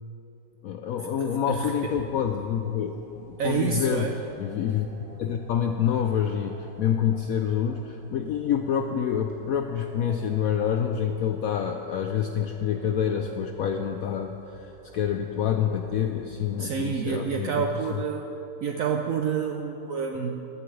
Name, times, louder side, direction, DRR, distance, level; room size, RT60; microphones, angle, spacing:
voice 1, 0.6-4.1 4.4-4.9 5.2-18.0, left 8 dB, 75° left, 5 dB, 0.8 m, -27 dB
voice 2, 1.5-1.9 3.4-4.2 16.6-18.3 18.6-20.4, right 6 dB, 70° right, 4 dB, 0.8 m, -28 dB
sound 1, 2.0-17.2, right 1 dB, 20° right, 2.0 m, -52 dB
14.5 x 11.5 x 3.2 m, 3.0 s
omnidirectional pair, 2.0 m